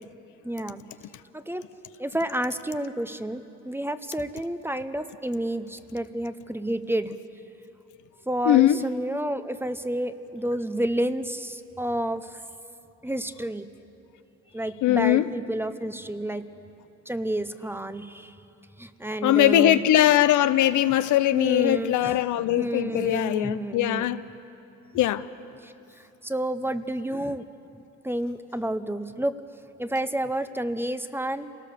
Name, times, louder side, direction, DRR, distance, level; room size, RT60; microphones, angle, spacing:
voice 1, 0.4-0.8 1.3-1.7 2.0-7.1 8.3-12.4 13.0-13.7 14.5-16.5 17.1-18.4 18.8-19.8 21.3-24.2 25.6-27.5 27.7-29.4 29.8-31.5, right 1 dB, 5° right, 0.8 m, -30 dB
voice 2, 8.4-8.8 14.8-15.3 19.2-24.2 24.9-25.3, left 13 dB, 80° left, 0.7 m, -21 dB
27.5 x 18.5 x 6.8 m
cardioid pair, 90°, 30 cm